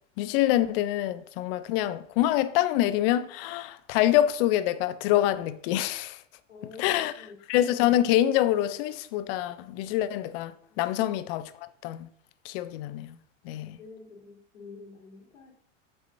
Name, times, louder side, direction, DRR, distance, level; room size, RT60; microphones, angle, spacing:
voice 1, 0.2-6.2 6.8-7.1 7.5-11.5 11.8-12.1 12.4-13.1 13.5-13.8, left 13 dB, 50° left, 0.5 m, -26 dB
voice 2, 6.5-7.3 10.7-10.9 13.4-15.5, left 4 dB, 80° left, 2.1 m, -48 dB
7.3 x 5.5 x 2.6 m
hypercardioid pair, 100°, 38 cm